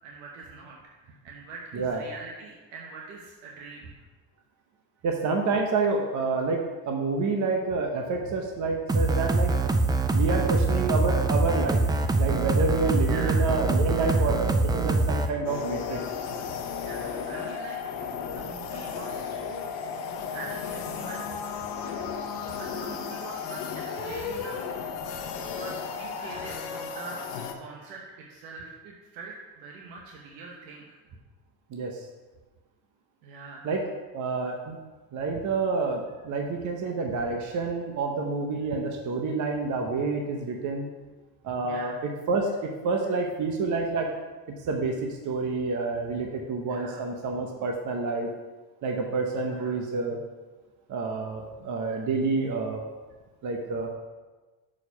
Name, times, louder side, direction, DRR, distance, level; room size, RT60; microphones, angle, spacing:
voice 1, 0.0-3.9 13.1-13.5 13.9-14.3 16.8-17.8 18.3-19.7 20.3-21.3 21.8-21.9 22.5-24.8 25.5-31.0 33.2-33.7 41.6-42.0 46.7-47.0 49.5-49.7, right 4 dB, 85° right, -1 dB, 1.1 m, -43 dB
voice 2, 5.0-9.5 10.1-11.8 12.2-16.0 31.7-32.1 33.6-33.8 34.1-34.8 35.1-40.9 41.4-44.1 44.6-48.3 48.8-50.2 50.9-52.8 53.4-53.9, right 3 dB, 45° right, 2 dB, 1.0 m, -28 dB
sound 1, 8.9-15.3, right 3 dB, 10° right, 0.3 m, -24 dB
sound 2, 15.4-27.5, left 6 dB, 80° left, 1.1 m, -34 dB
6.4 x 5.0 x 5.7 m, 1.2 s
cardioid pair, 115°, 42 cm